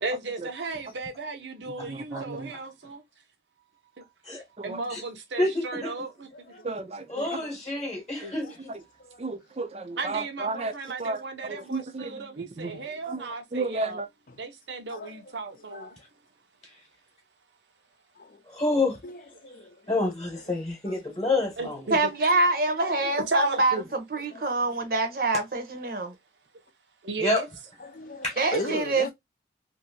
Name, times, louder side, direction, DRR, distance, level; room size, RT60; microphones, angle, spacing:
voice 1, 0.0-3.0 4.0-4.1 4.6-6.5 7.2-7.3 8.2-8.4 10.0-14.0 14.4-15.9 20.5-20.6 21.0-22.1 22.7-23.9 27.0-27.5 28.6-28.8, right 3 dB, 85° right, 0.8 m, -35 dB
voice 2, 1.9-2.5 4.6-4.8 6.6-7.1 9.2-10.7 11.0-11.2 11.7-12.1 12.6-12.7 13.1-13.2 13.5-14.1, right 3 dB, 35° right, 0.4 m, -32 dB
voice 3, 5.4-5.9 7.1-8.7 18.5-19.0 19.9-21.8 27.2-27.4 28.2-28.3, left 2 dB, 25° left, 1.0 m, -28 dB
voice 4, 19.0-20.0 20.9-21.0 22.8-23.3 24.3-24.4 27.8-29.1, left 3 dB, 50° left, 0.5 m, -38 dB
voice 5, 21.9-23.8 24.1-26.1 28.4-29.1, right 2 dB, 55° right, 0.8 m, -25 dB
2.6 x 2.6 x 2.7 m
head